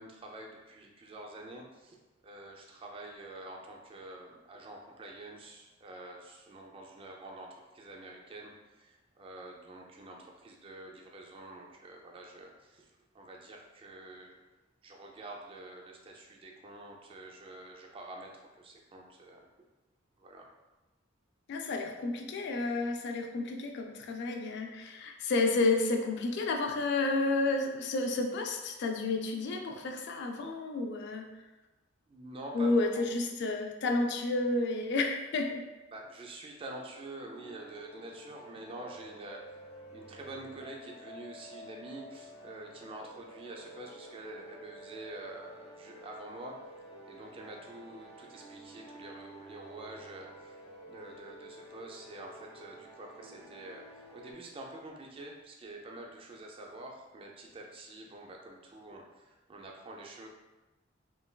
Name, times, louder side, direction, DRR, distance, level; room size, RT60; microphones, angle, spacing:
voice 1, 0.0-2.0 2.2-14.4 14.8-19.5 20.2-20.5 32.1-33.1 35.9-39.6 39.9-46.6 47.0-50.6 50.9-60.3, right 2 dB, 30° right, 0 dB, 0.3 m, -47 dB
voice 2, 21.5-31.3 32.5-35.6, left 3 dB, 60° left, 3 dB, 0.3 m, -31 dB
sound 1, 37.3-54.3, right 1 dB, 35° left, 0.9 m, -51 dB
3.2 x 2.2 x 2.2 m, 1.1 s
head